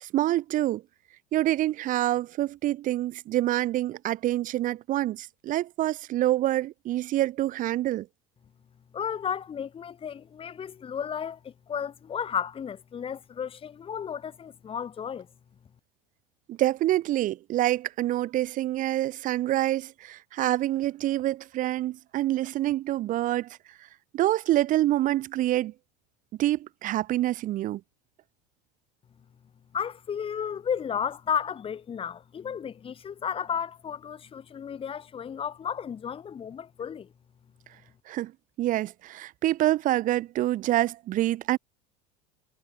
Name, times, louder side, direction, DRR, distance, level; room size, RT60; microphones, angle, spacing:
voice 1, 0.0-0.8 1.3-8.1 16.5-23.6 24.1-25.7 26.4-27.8 38.1-38.3 38.6-41.6, right 14 dB, 40° right, 0.7 m, -26 dB
voice 2, 8.9-15.3 29.7-37.1, left 7 dB, 30° left, 1.6 m, -33 dB
hypercardioid pair, 90°, 20 cm